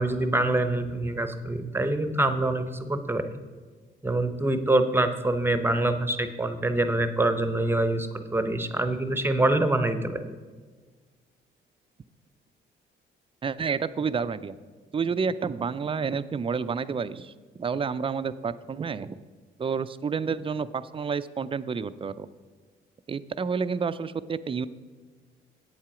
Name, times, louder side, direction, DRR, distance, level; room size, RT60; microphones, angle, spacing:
voice 1, 0.0-3.4 4.0-10.2, right 2 dB, 10° right, 9 dB, 0.7 m, -25 dB
voice 2, 13.4-14.6 14.9-17.3 17.6-19.2 19.6-22.3 23.1-24.7, right 5 dB, 25° right, 14 dB, 0.4 m, -29 dB
8.3 x 7.4 x 4.9 m, 1.5 s
cardioid pair, 90°, 20 cm